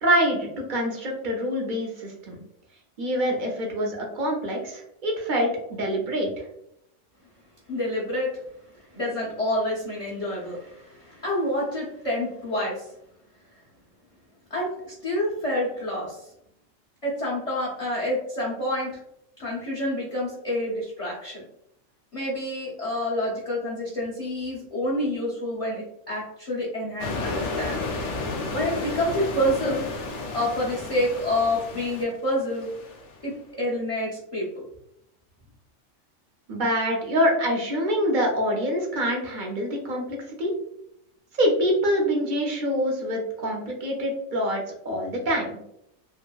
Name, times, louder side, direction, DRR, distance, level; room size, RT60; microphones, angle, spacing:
voice 1, 0.0-2.4 3.0-6.3 36.5-40.5 41.4-45.5, equal, 50° right, 0 dB, 0.6 m, -25 dB
voice 2, 7.7-8.3 8.8-12.9 14.5-16.3 17.0-19.0 19.4-21.4 22.1-27.9 28.5-29.9 30.3-32.7 33.2-34.6, left 1 dB, 40° left, -5 dB, 0.5 m, -28 dB
sound 1, 27.0-33.2, left 3 dB, 70° left, 0.8 m, -32 dB
2.8 x 2.5 x 2.3 m, 0.79 s
omnidirectional pair, 1.4 m